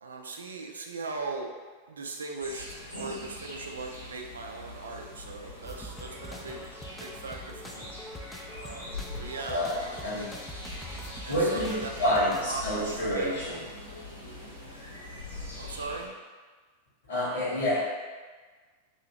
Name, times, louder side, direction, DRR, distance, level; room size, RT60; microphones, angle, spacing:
voice 1, 0.0-1.5 1.9-6.6 7.0-8.0 8.5-10.2 11.3-13.4 15.6-16.1, right 3 dB, 70° right, 1 dB, 0.4 m, -39 dB
sound 1, 2.4-16.0, left 2 dB, 90° left, 0.9 m, -43 dB
sound 2, 5.6-12.5, equal, 5° left, 0.4 m, -44 dB
voice 2, 9.5-10.3 11.3-13.6 17.1-17.8, equal, 60° left, -7 dB, 1.3 m, -28 dB
2.8 x 2.7 x 2.8 m, 1.4 s
figure-of-eight pair, 90°, 0 cm